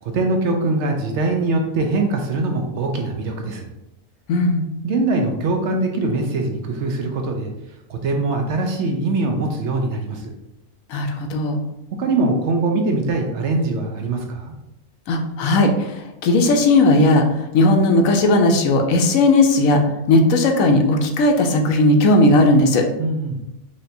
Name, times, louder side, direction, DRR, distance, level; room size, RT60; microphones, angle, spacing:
voice 1, 0.0-3.7 4.8-7.5 7.9-10.3 12.0-14.5 23.0-23.4, right 2 dB, 65° right, 3 dB, 0.8 m, -22 dB
voice 2, 4.3-4.6 10.9-11.6 15.1-17.2 17.5-19.8 20.1-22.9, left 2 dB, 80° left, 4 dB, 1.0 m, -16 dB
5.0 x 2.8 x 2.6 m, 0.88 s
omnidirectional pair, 1.4 m